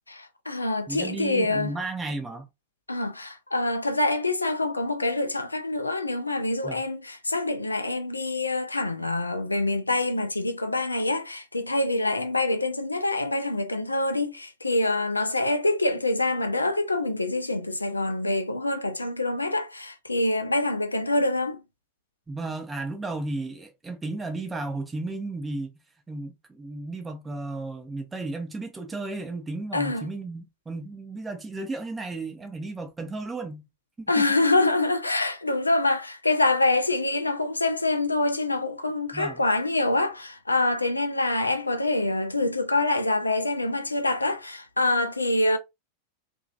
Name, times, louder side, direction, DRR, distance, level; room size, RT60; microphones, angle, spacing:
voice 1, 0.2-1.7 2.9-21.6 29.7-30.1 34.1-45.6, left 2 dB, 80° left, 0.4 m, -25 dB
voice 2, 0.9-2.5 6.6-6.8 22.3-25.7 26.1-33.7 34.0-34.2 39.1-39.4, right 2 dB, 15° right, 0.5 m, -34 dB
2.9 x 2.5 x 2.4 m
figure-of-eight pair, 90°, 0 cm